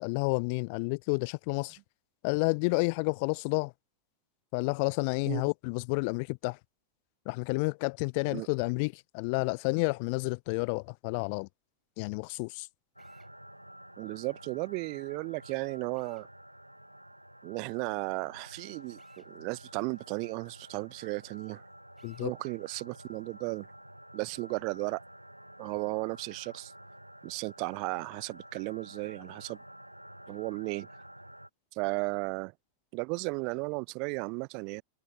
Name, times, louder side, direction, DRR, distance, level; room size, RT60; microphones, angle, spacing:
voice 1, 0.0-1.8 2.2-3.7 4.5-6.6 7.3-11.5 12.0-12.7 22.0-22.3, left 33 dB, 45° left, 0.5 m, -30 dB
Drill, 13.0-13.3 15.9-16.3 19.0-19.3 22.0-22.3, right 7 dB, 20° right, 3.5 m, -66 dB
sound 1, 13.0-31.5, right 1 dB, 90° right, 1.0 m, -51 dB
voice 2, 14.0-16.3 17.4-21.6 22.2-23.7 24.1-25.0 25.6-26.7 27.2-29.6 30.3-30.9 31.7-32.5 32.9-34.8, right 33 dB, 45° right, 0.3 m, -35 dB
figure-of-eight pair, 90°, 0 cm